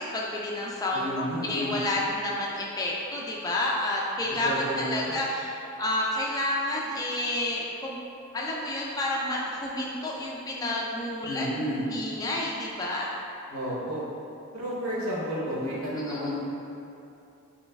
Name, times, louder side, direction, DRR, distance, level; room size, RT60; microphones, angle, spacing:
voice 1, 0.0-8.0 8.3-13.2 16.1-16.4, left 1 dB, 15° left, -4 dB, 0.3 m, -30 dB
voice 2, 0.9-1.8 4.4-5.2 11.3-11.8 13.5-14.0 14.5-16.5, equal, 75° right, -6 dB, 0.9 m, -31 dB
3.1 x 3.1 x 3.4 m, 2.7 s
head